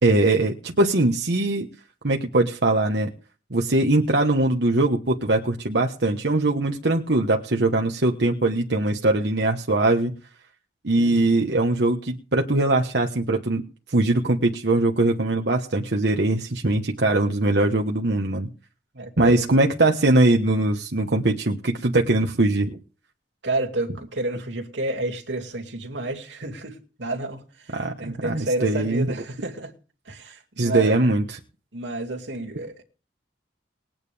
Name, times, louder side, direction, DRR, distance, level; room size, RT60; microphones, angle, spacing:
voice 1, 0.0-1.7 2.0-3.1 3.5-10.1 10.8-13.6 13.9-18.5 19.2-22.8 27.7-29.1 30.6-31.4, right 2 dB, 65° right, 1.2 m, -21 dB
voice 2, 11.0-11.3 18.9-19.4 23.4-29.7 30.1-31.0 31.7-32.8, right 2 dB, 85° right, 2.4 m, -30 dB
20.5 x 9.1 x 3.5 m
head